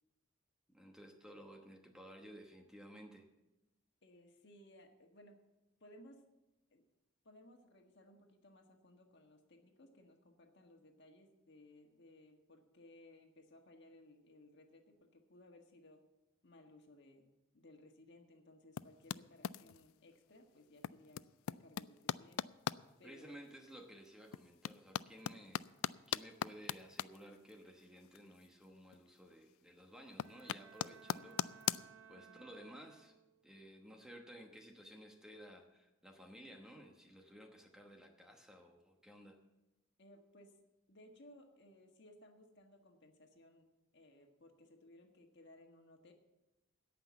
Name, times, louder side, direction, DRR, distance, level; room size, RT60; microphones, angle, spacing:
voice 1, 0.7-3.3 23.0-25.6 26.1-31.6 32.1-33.2 33.4-39.4, equal, 5° right, 2 dB, 1.0 m, -55 dB
voice 2, 4.0-5.4 5.8-6.2 6.7-6.8 7.2-16.0 16.4-22.4 23.0-23.4 24.4-24.5 32.3-32.4 40.0-40.5 40.9-46.1, left 1 dB, 55° left, 3 dB, 1.6 m, -61 dB
sound 1, 18.8-19.9 20.8-22.8 23.3-23.4 24.0-28.6 28.9-29.5 29.8-31.8, left 10 dB, 80° left, 0.3 m, -40 dB
Bowed string instrument, 30.1-33.5, right 7 dB, 65° right, 0.7 m, -60 dB
17.0 x 5.9 x 7.0 m, 0.99 s
head